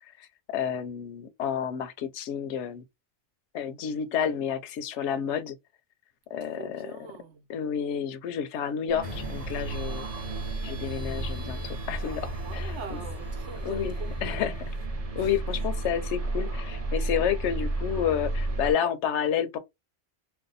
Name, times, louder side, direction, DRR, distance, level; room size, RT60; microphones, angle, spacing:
voice 1, 0.2-2.8 3.5-5.6 6.3-6.9 7.5-10.0 10.6-13.0 13.6-13.9 14.2-14.6 15.2-19.6, left 8 dB, 80° left, 0.9 m, -30 dB
voice 2, 6.6-7.5 12.4-14.5 15.2-15.3, right 5 dB, 70° right, 0.9 m, -43 dB
sound 1, 8.9-18.7, right 2 dB, 35° right, 0.8 m, -33 dB
sound 2, 9.0-14.9, equal, 10° left, 0.8 m, -45 dB
2.6 x 2.2 x 3.9 m
omnidirectional pair, 1.2 m